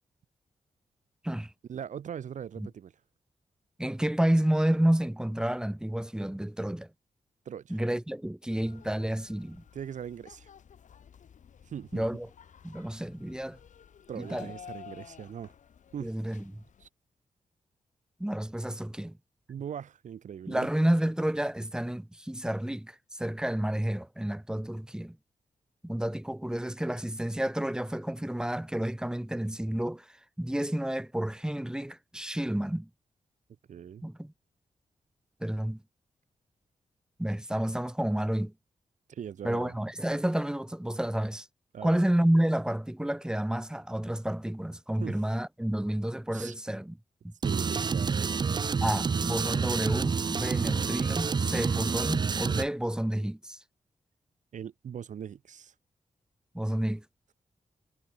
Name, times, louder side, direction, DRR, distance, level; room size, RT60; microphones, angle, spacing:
voice 1, 1.7-3.0 7.4-7.8 9.7-10.5 11.6-12.1 14.1-15.5 15.9-16.1 16.8-16.9 19.5-20.7 33.7-34.0 39.1-39.7 41.7-42.0 45.0-45.2 46.3-46.5 47.4-48.8 54.5-55.7, right 8 dB, 80° right, 1.2 m, -40 dB
voice 2, 3.8-6.9 7.7-9.6 11.9-12.3 12.6-13.6 14.2-14.5 16.0-16.6 18.2-19.2 20.5-25.2 25.8-32.9 34.0-34.3 35.4-35.8 37.2-38.5 39.4-41.5 41.8-46.9 47.2-47.3 48.8-53.6 56.5-57.0, right 1 dB, 5° right, 1.0 m, -30 dB
sound 1, 8.5-16.9, left 8 dB, 80° left, 7.9 m, -52 dB
sound 2, 47.4-52.7, right 5 dB, 35° right, 0.5 m, -28 dB
wide cardioid pair, 95°, 13 cm